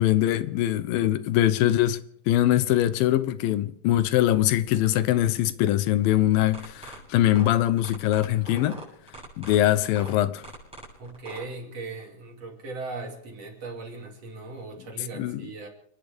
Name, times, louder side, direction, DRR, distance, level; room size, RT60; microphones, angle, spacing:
voice 1, 0.0-2.0 2.3-8.8 9.4-10.4 15.1-15.4, left 13 dB, 85° left, 2.5 m, -22 dB
sound 1, 6.5-11.4, right 2 dB, ahead, 7.8 m, -43 dB
voice 2, 11.0-15.7, right 3 dB, 45° right, 3.7 m, -38 dB
29.0 x 11.0 x 3.5 m
omnidirectional pair, 4.1 m